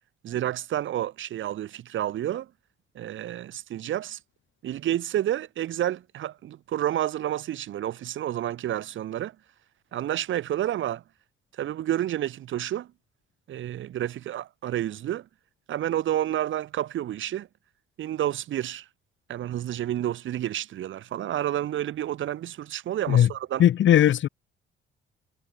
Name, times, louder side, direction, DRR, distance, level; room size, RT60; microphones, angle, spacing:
voice 1, 0.2-2.5 3.0-4.2 4.6-9.3 9.9-11.0 11.6-12.9 13.5-15.3 15.7-17.5 18.0-18.8 19.3-23.6, right 12 dB, 75° right, 7.6 m, -30 dB
voice 2, 23.6-24.3, left 11 dB, 70° left, 7.0 m, -18 dB
cardioid pair, 90°, 20 cm